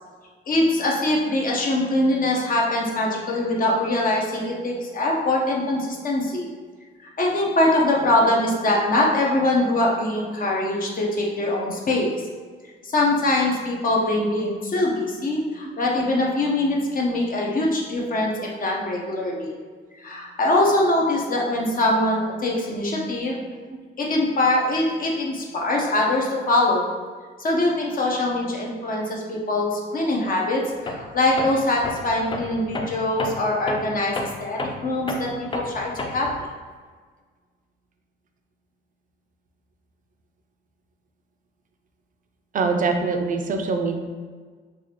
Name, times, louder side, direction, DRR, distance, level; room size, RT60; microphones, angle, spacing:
voice 1, 0.5-6.5 7.2-12.1 12.8-19.5 20.0-23.4 24.0-26.9 27.4-34.1 34.4-36.3, left 1 dB, 45° left, -2 dB, 0.8 m, -23 dB
Tools, 30.9-31.1 31.4-36.4, left 2 dB, 25° left, 0.4 m, -31 dB
voice 2, 42.5-44.0, right 4 dB, 40° right, 4 dB, 0.5 m, -24 dB
3.9 x 2.4 x 2.9 m, 1.5 s
cardioid pair, 90°, 20 cm